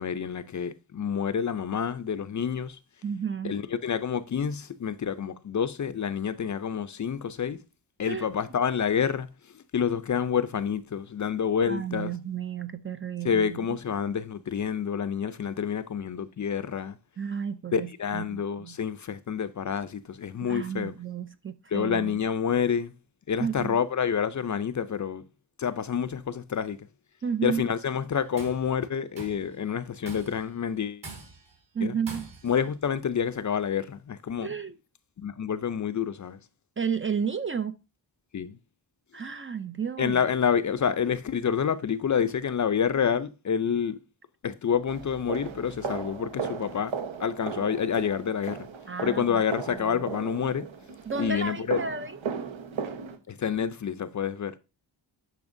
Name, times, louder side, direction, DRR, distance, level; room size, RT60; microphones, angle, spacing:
voice 1, 0.0-2.8 3.4-7.6 8.0-9.3 9.5-12.1 13.2-17.0 17.7-20.9 21.7-22.9 23.3-25.2 25.6-26.8 27.4-31.0 31.8-31.9 32.4-34.5 35.2-36.4 38.3-38.6 40.0-44.0 44.4-46.9 47.2-48.7 49.0-50.7 51.2-51.8 53.3-54.5, left 7 dB, 40° left, 0.5 m, -28 dB
voice 2, 3.0-3.5 8.0-8.3 11.7-13.8 17.2-18.8 20.4-22.2 23.4-23.8 27.2-27.7 31.7-32.3 34.4-34.7 36.8-37.8 39.1-40.2 48.9-49.4 49.7-50.0 51.1-52.2, right 6 dB, 30° right, 0.4 m, -32 dB
Tools, 28.1-28.7 29.2-29.5 30.1-30.5 31.0-31.5 32.1-32.6, right 3 dB, 55° right, 4.8 m, -43 dB
sound 1, 44.9-53.2, right 6 dB, 80° right, 1.2 m, -36 dB
10.5 x 5.7 x 2.6 m
wide cardioid pair, 125°, 46 cm